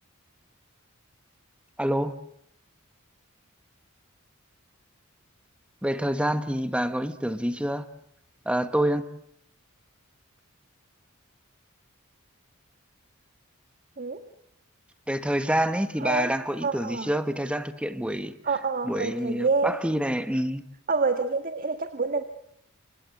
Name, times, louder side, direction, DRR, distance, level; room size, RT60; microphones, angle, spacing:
voice 1, 1.8-2.1 5.8-7.9 8.4-9.1 15.1-18.3 18.8-20.6, right 1 dB, 5° right, 10 dB, 1.4 m, -27 dB
voice 2, 16.0-16.3 16.6-17.1 18.4-19.8 20.9-22.2, right 4 dB, 40° right, 8 dB, 1.8 m, -27 dB
27.5 x 27.5 x 7.9 m, 0.72 s
head